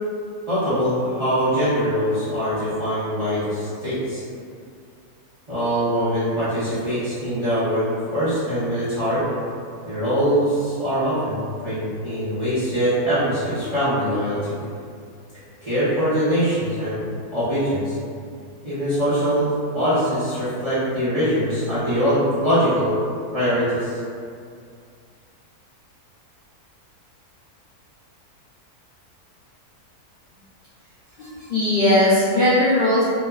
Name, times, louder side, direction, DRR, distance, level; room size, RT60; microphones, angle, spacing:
voice 1, 0.5-4.2 5.5-7.8 8.1-9.2 9.8-14.5 15.6-17.0 17.3-18.0 18.6-23.0 23.3-24.0, equal, 30° right, -15 dB, 0.7 m, -22 dB
voice 2, 31.2-33.0, left 1 dB, 55° left, -13 dB, 0.6 m, -18 dB
2.9 x 2.2 x 2.2 m, 2.3 s
omnidirectional pair, 1.6 m